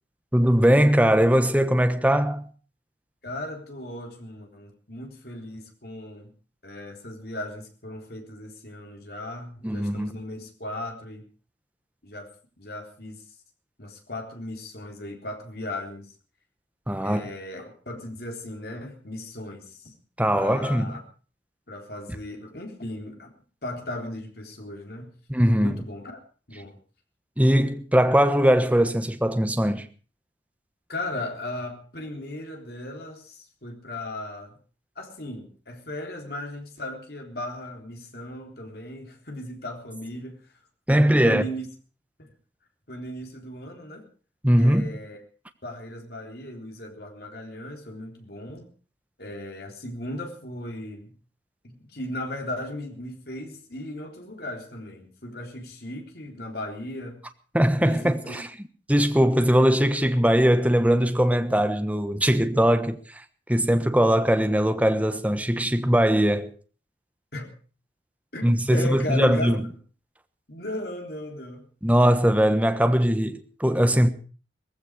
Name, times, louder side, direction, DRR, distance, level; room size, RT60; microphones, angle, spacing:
voice 1, 0.3-2.5 9.6-10.1 16.9-17.3 20.2-20.9 25.3-25.8 27.4-29.9 40.9-41.4 44.4-44.9 57.5-58.5 58.9-66.5 68.4-69.6 71.8-74.1, equal, 10° right, 1.2 m, -20 dB
voice 2, 3.2-6.3 6.6-11.3 12.0-12.3 12.6-13.2 13.8-16.1 17.0-19.9 20.3-21.0 21.7-23.3 23.6-25.2 25.6-26.2 26.5-26.8 30.9-34.6 35.0-40.5 41.2-41.7 42.2-42.3 42.9-44.1 44.6-45.2 45.6-48.7 49.2-51.2 51.6-57.2 57.8-58.4 67.3-67.5 68.3-69.5 70.5-71.7, left 1 dB, 55° left, 3.8 m, -37 dB
18.5 x 15.5 x 4.9 m
head